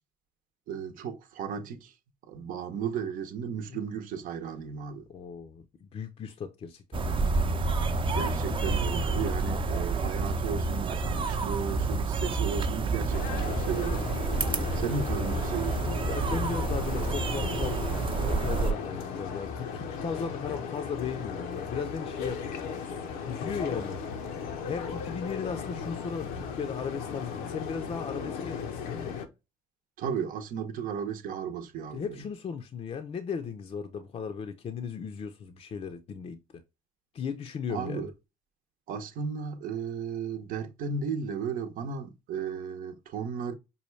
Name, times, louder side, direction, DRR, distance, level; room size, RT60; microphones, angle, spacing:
voice 1, 0.7-1.9 2.2-5.1 8.1-14.3 14.7-15.9 30.0-32.3 37.7-38.1 38.9-43.5, right 6 dB, 70° right, 0.8 m, -35 dB
voice 2, 5.1-7.7 12.7-12.9 16.1-18.0 18.3-22.7 23.3-24.0 24.6-29.2 31.9-36.6 37.1-38.1, left 6 dB, 45° left, 0.6 m, -36 dB
sound 1, 6.9-18.7, right 3 dB, 35° right, 0.6 m, -29 dB
sound 2, 13.1-29.3, left 6 dB, 80° left, 0.7 m, -36 dB
5.4 x 2.2 x 3.1 m
supercardioid pair, 70°, 15 cm